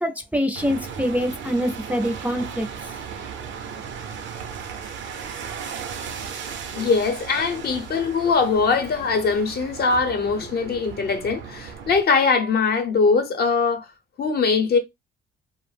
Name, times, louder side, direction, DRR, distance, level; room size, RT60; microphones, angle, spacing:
voice 1, 0.0-2.7, equal, 5° right, 0.4 m, -25 dB
sound 1, 0.5-12.0, right 7 dB, 70° right, 0.6 m, -36 dB
voice 2, 6.7-13.9 14.2-14.8, left 4 dB, 55° left, 0.7 m, -21 dB
2.4 x 2.0 x 3.2 m
cardioid pair, 90°, 20 cm